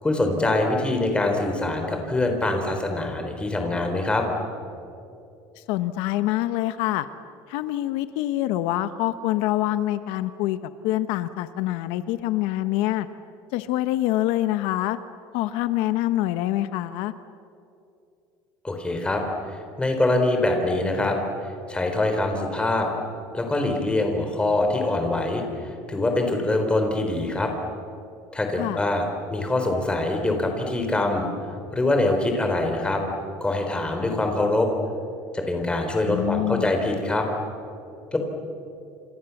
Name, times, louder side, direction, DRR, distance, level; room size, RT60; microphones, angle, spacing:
voice 1, 0.0-4.2 18.6-19.2 19.5-22.9 23.3-27.5 28.3-31.3 31.7-33.0 33.4-34.7 35.3-37.3 38.1-38.2, left 2 dB, 10° left, 4 dB, 4.1 m, -24 dB
voice 2, 5.6-7.1 7.5-10.6 10.8-13.1 13.5-15.0 15.3-17.1 28.6-28.8 36.0-36.7, left 15 dB, 75° left, 11 dB, 1.0 m, -25 dB
29.5 x 28.0 x 7.2 m, 2.6 s
cardioid pair, 150°, 9 cm